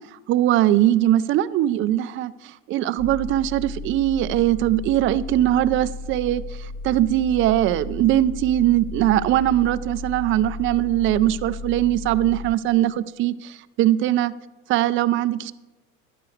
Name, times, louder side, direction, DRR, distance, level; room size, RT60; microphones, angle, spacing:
voice 1, 0.1-14.3 14.7-15.5, right 13 dB, 30° right, 0.4 m, -21 dB
sound 1, 3.0-12.6, left 2 dB, 45° left, 0.8 m, -35 dB
11.0 x 4.7 x 7.7 m
supercardioid pair, 110°, 39 cm